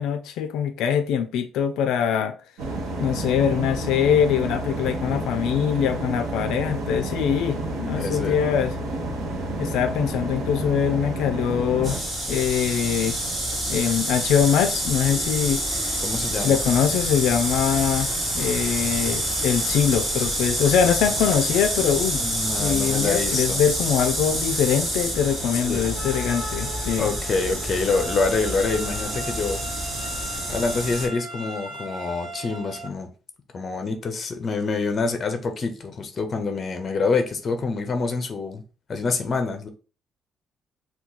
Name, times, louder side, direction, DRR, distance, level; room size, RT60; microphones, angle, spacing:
voice 1, 0.0-2.3 3.0-8.7 9.6-12.0 12.3-13.2 13.7-16.0 16.4-18.1 18.3-22.2 22.5-27.1, left 8 dB, 80° left, 0.3 m, -23 dB
sound 1, 2.6-12.0, right 1 dB, 75° right, 0.9 m, -30 dB
voice 2, 8.0-8.4 16.0-16.6 22.2-23.6 25.5-25.9 27.0-29.6 30.5-33.1 33.5-38.6 38.9-39.7, left 4 dB, 25° left, 0.5 m, -26 dB
sound 2, 11.8-31.1, right 1 dB, 25° right, 1.0 m, -27 dB
sound 3, 27.9-32.9, right 1 dB, 55° right, 0.4 m, -37 dB
2.9 x 2.3 x 3.7 m
cardioid pair, 180°, 0 cm